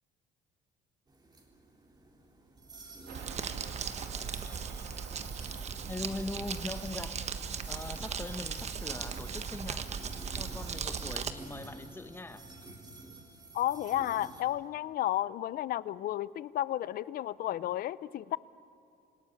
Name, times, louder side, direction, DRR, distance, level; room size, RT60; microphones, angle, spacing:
sound 1, 1.1-14.4, right 2 dB, 25° right, 3.6 m, -51 dB
Crumpling crinkling, 3.1-11.3, right 6 dB, 40° right, 1.4 m, -38 dB
sound 2, 3.1-10.7, right 7 dB, 90° right, 2.3 m, -51 dB
voice 1, 5.9-7.2 7.7-10.0 10.3-12.5, left 2 dB, 15° left, 10 dB, 1.2 m, -41 dB
voice 2, 13.5-18.4, left 13 dB, 60° left, 19 dB, 0.6 m, -32 dB
27.0 x 18.0 x 9.9 m, 2.6 s
cardioid pair, 110°, 17 cm